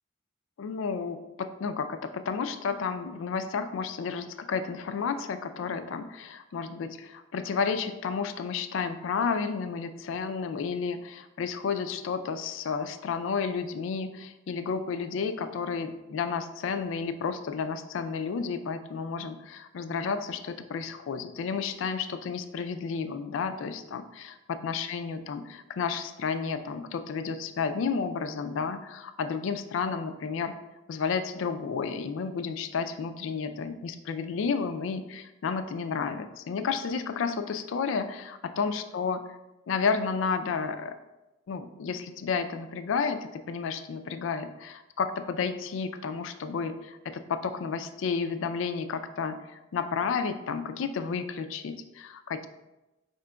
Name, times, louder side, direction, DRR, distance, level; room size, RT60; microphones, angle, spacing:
voice 1, 0.6-30.5 30.9-39.2 39.7-40.9 41.5-52.5, left 5 dB, 70° left, 9 dB, 0.3 m, -31 dB
4.9 x 4.3 x 2.2 m, 1.0 s
head